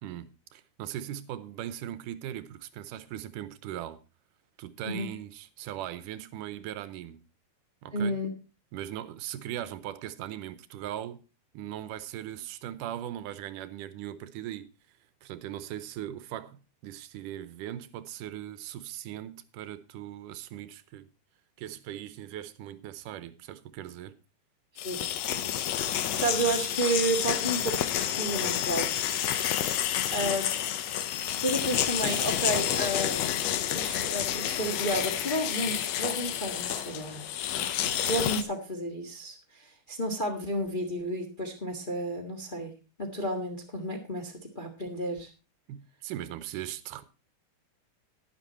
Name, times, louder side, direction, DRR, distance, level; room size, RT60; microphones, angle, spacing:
voice 1, 0.0-4.0 4.6-7.2 7.8-8.2 8.7-11.2 11.5-14.7 15.2-21.1 21.6-24.2 30.1-30.4 45.7-47.0, right 12 dB, 85° right, 2.3 m, -39 dB
voice 2, 7.9-8.3 24.8-25.0 25.9-29.0 30.1-30.4 31.4-33.2 33.7-37.2 38.0-42.7 43.0-45.3, right 1 dB, 25° left, 1.1 m, -31 dB
sound 1, 24.8-38.4, left 11 dB, 70° left, 1.7 m, -29 dB
11.5 x 10.5 x 4.2 m
omnidirectional pair, 3.7 m